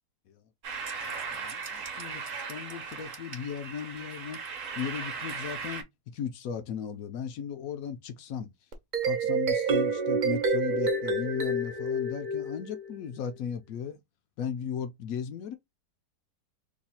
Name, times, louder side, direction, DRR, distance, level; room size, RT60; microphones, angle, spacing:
sound 1, 0.6-5.8, right 5 dB, 55° right, 1.0 m, -38 dB
voice 1, 0.9-8.5 9.0-14.0 14.4-15.6, left 7 dB, 70° left, 0.8 m, -37 dB
sound 2, 8.7-13.1, right 3 dB, 85° right, 0.4 m, -28 dB
3.0 x 2.3 x 4.1 m
omnidirectional pair, 1.8 m